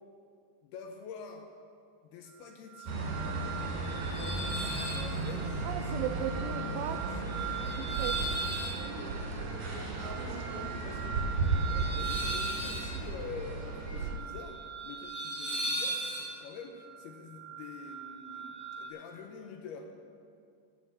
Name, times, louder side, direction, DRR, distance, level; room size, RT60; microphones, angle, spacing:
voice 1, 0.6-1.5 2.0-3.1 4.1-5.7 10.0-11.2 11.6-19.8, left 5 dB, 75° left, 4 dB, 2.5 m, -46 dB
sound 1, 2.7-18.9, right 3 dB, 15° left, 2.9 m, -39 dB
sound 2, 2.9-14.2, right 3 dB, 50° right, 3.1 m, -35 dB
voice 2, 5.6-7.2 7.6-8.2, right 10 dB, 85° right, 7 dB, 2.4 m, -37 dB
16.0 x 7.7 x 6.6 m, 2.3 s
omnidirectional pair, 5.2 m